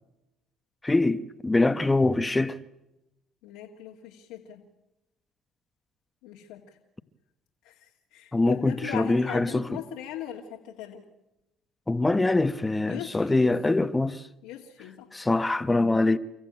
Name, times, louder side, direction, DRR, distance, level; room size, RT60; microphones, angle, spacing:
voice 1, 0.8-2.6 8.3-9.6 11.9-14.2 15.1-16.2, left 2 dB, 15° left, 1.1 m, -24 dB
voice 2, 3.4-4.6 6.2-6.8 7.6-11.0 12.9-13.9 14.4-15.1, left 11 dB, 80° left, 2.2 m, -40 dB
30.0 x 15.0 x 8.9 m
supercardioid pair, 70°, 0 cm